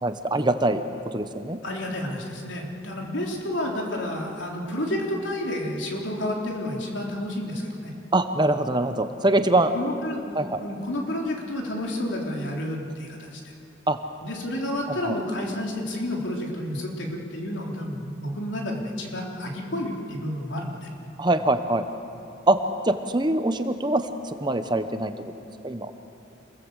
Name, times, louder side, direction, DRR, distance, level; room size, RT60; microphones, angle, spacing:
voice 1, 0.0-0.8 1.1-1.6 8.1-9.7 10.3-10.6 13.9-14.0 15.1-15.2 21.2-21.8 22.5-22.6 22.8-25.1 25.6-25.9, right 2 dB, 20° right, 8 dB, 1.0 m, -23 dB
voice 2, 1.6-7.9 9.7-13.4 14.2-20.9, left 1 dB, 70° left, 0 dB, 3.9 m, -30 dB
27.5 x 21.5 x 8.2 m, 2.9 s
head